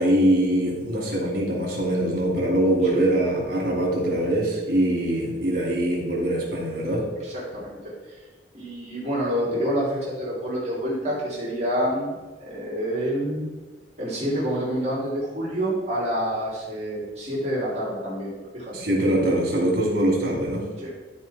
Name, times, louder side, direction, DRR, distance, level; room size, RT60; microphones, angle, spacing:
voice 1, 0.0-7.0 18.7-20.7, right 1 dB, 55° right, -2 dB, 2.8 m, -23 dB
voice 2, 7.3-8.2 8.5-12.1 12.4-13.5 14.0-18.9 20.8-20.9, equal, 35° right, -7 dB, 3.0 m, -28 dB
13.0 x 4.6 x 4.3 m, 1.3 s
head